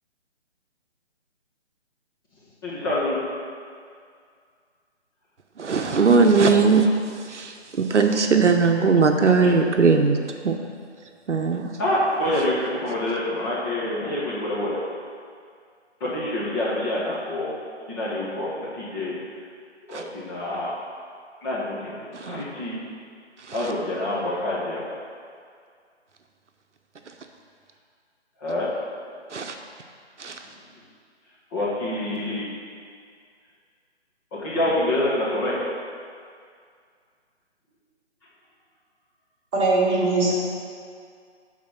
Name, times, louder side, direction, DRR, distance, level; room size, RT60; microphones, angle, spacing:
voice 1, 2.6-3.2 11.8-14.8 16.0-17.5 17.9-19.1 19.9-20.7 21.4-22.8 23.5-24.9 28.4-28.7 31.5-32.5 34.3-35.5, left 1 dB, 20° left, -7 dB, 1.2 m, -26 dB
voice 2, 5.6-6.9 7.3-10.2 10.4-10.5 11.3-11.7 19.9-20.0 22.1-22.4 23.5-23.7 29.3-29.5 30.2-30.4, right 4 dB, 80° right, 4 dB, 0.8 m, -19 dB
voice 3, 39.5-40.3, right 3 dB, 20° right, -9 dB, 2.2 m, -20 dB
9.5 x 4.1 x 5.8 m, 2.2 s
figure-of-eight pair, 150°, 35 cm